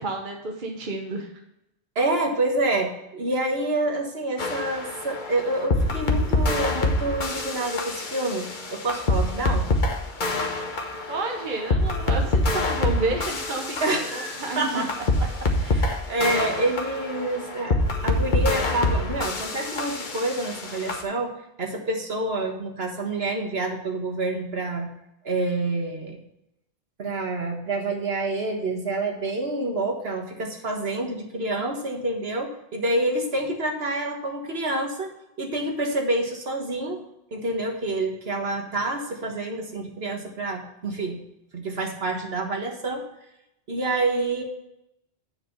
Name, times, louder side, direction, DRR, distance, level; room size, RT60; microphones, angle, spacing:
voice 1, 0.0-1.3 11.1-14.8, right 3 dB, 50° right, 2 dB, 1.2 m, -30 dB
voice 2, 2.0-8.5 8.7-9.7 13.8-14.9 15.4-21.3 21.6-24.9 25.2-26.2 27.0-35.1 35.4-37.0 37.3-41.2 41.5-43.0 43.7-44.4, right 2 dB, 70° right, 2 dB, 1.7 m, -27 dB
sound 1, 4.4-21.0, left 2 dB, 50° left, 1.2 m, -26 dB
9.5 x 5.3 x 5.5 m, 0.86 s
omnidirectional pair, 1.1 m